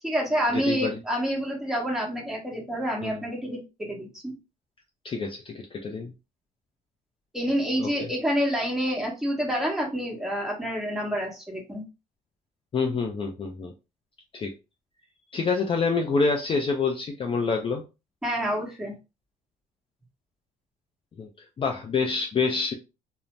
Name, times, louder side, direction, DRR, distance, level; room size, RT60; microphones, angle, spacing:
voice 1, 0.0-4.3 7.3-11.8 18.2-18.9, equal, 5° right, -2 dB, 1.1 m, -28 dB
voice 2, 0.5-1.0 3.0-3.2 5.0-6.1 7.8-8.1 12.7-13.7 14.3-14.5 15.3-17.8 21.2-21.3 21.6-22.7, left 4 dB, 30° left, 2 dB, 0.4 m, -27 dB
2.6 x 2.0 x 3.2 m, 0.28 s
cardioid pair, 110°, 17 cm